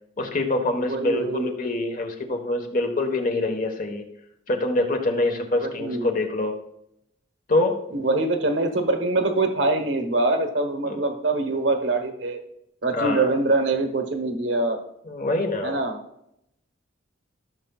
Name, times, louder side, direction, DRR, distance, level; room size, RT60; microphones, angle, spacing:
voice 1, 0.2-4.0 4.5-6.6 7.5-7.8 10.8-11.0 12.9-13.4 15.0-15.8, left 2 dB, 45° left, 4 dB, 1.3 m, -25 dB
voice 2, 0.9-1.5 5.6-6.1 7.9-12.4 12.8-14.8 15.6-16.0, right 2 dB, 65° right, 6 dB, 1.2 m, -24 dB
15.5 x 6.9 x 2.4 m, 0.79 s
head